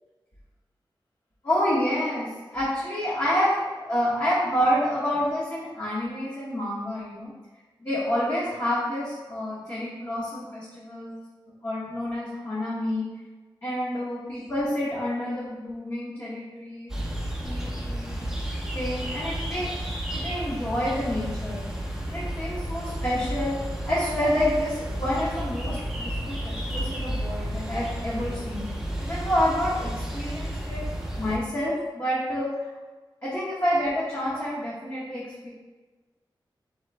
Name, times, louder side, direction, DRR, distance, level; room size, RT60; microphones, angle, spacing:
voice 1, 1.4-2.3 2.5-7.3 7.8-11.1 11.6-13.1 13.6-16.9 17.4-18.3 18.7-19.7 20.1-21.6 22.0-23.6 23.9-28.6 29.0-30.8 31.2-32.7 33.2-35.5, equal, 35° left, -9 dB, 1.2 m, -28 dB
sound 1, 16.9-31.4, right 1 dB, 5° right, 0.8 m, -32 dB
3.9 x 3.7 x 3.3 m, 1.3 s
wide cardioid pair, 70°, 9 cm